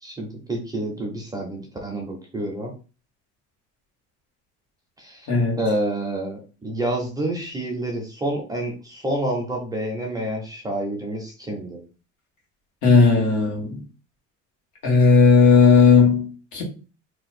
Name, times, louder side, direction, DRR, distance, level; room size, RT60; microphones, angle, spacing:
voice 1, 0.0-2.7 5.0-5.3 5.6-11.8, right 1 dB, 10° right, 0.6 m, -28 dB
voice 2, 5.3-5.6 12.8-13.8 14.8-16.6, left 4 dB, 70° left, 1.5 m, -16 dB
2.8 x 2.2 x 4.1 m
cardioid pair, 165°, 31 cm